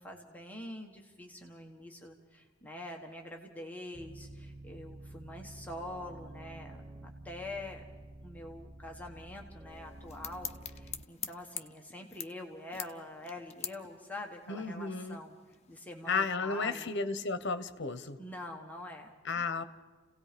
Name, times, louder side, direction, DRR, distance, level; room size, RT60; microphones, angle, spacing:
voice 1, 0.0-7.8 8.2-15.3 15.7-16.9 18.2-19.6, left 1 dB, 10° left, 1 dB, 1.4 m, -45 dB
sound 1, 3.9-11.0, right 1 dB, 15° right, 0.6 m, -50 dB
sound 2, 9.7-16.2, left 9 dB, 35° left, 1.0 m, -46 dB
voice 2, 14.5-15.2 16.1-18.2 19.2-19.6, left 4 dB, 60° left, 12 dB, 1.1 m, -33 dB
29.5 x 17.5 x 5.2 m, 1.5 s
head